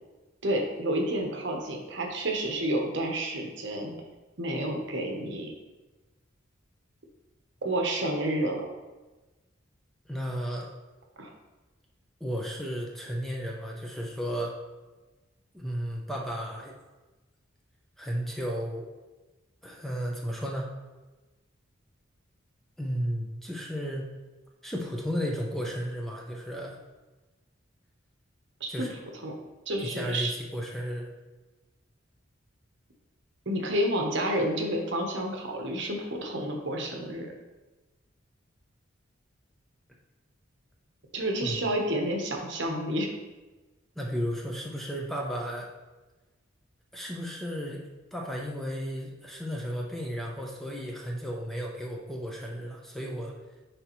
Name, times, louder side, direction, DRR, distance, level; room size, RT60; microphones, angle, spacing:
voice 1, 0.4-3.9 4.4-5.5 7.6-8.7 11.2-11.3 28.6-28.9 29.2-29.3 29.7-30.3 33.5-37.3 41.1-43.1, right 1 dB, 60° right, 2 dB, 0.9 m, -30 dB
voice 2, 10.1-10.7 12.2-14.5 15.5-16.7 18.0-18.9 19.6-20.7 22.8-24.1 24.6-26.8 28.7-28.9 29.8-31.1 41.4-41.6 44.0-45.7 46.9-47.8 48.1-53.3, equal, ahead, -1 dB, 0.5 m, -34 dB
9.7 x 3.4 x 3.0 m, 1.2 s
head